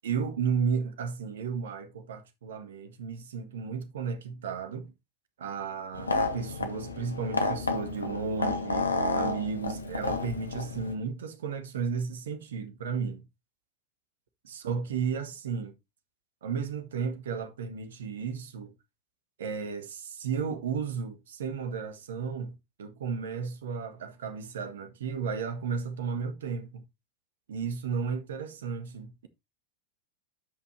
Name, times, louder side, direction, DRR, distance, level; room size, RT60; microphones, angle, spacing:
voice 1, 0.0-4.9 5.4-13.2 14.5-15.8 16.4-18.7 19.4-26.8 27.5-29.3, right 6 dB, 60° right, 1.4 m, -34 dB
sound 1, 5.9-10.9, left 3 dB, 75° left, 1.2 m, -31 dB
13.0 x 5.5 x 2.6 m
figure-of-eight pair, 90°, 0 cm